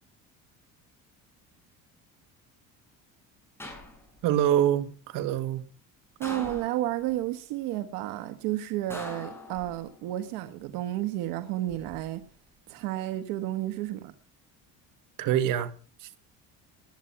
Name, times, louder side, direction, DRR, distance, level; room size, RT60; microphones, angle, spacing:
sound 1, 3.6-4.4 6.2-7.2 8.9-10.0 11.4-12.0, left 1 dB, 5° left, 7.5 m, -42 dB
voice 1, 4.2-5.6 15.2-15.7 16.0-16.1, right 11 dB, 70° right, 2.0 m, -25 dB
voice 2, 6.2-12.2 12.7-14.1, right 14 dB, 90° right, 1.5 m, -31 dB
19.5 x 11.5 x 5.9 m
cardioid pair, 130°, 33 cm